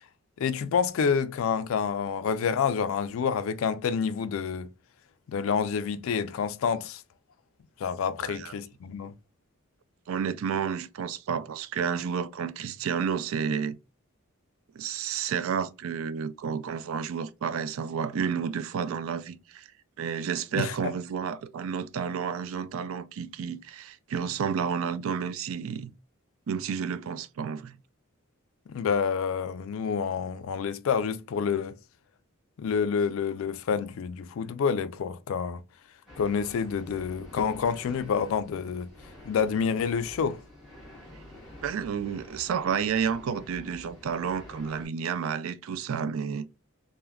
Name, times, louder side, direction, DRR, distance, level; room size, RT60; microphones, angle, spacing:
voice 1, 0.4-4.7 5.3-7.0 7.8-9.1 20.6-20.7 28.7-31.8 32.6-35.6 36.2-38.9 39.3-40.4, left 6 dB, 70° left, 0.3 m, -28 dB
voice 2, 8.2-8.5 10.1-13.8 14.8-19.7 20.0-25.9 26.5-27.8 41.6-46.5, right 7 dB, 75° right, 0.3 m, -31 dB
sound 1, 36.1-44.9, left 1 dB, ahead, 1.1 m, -48 dB
3.3 x 2.1 x 2.3 m
head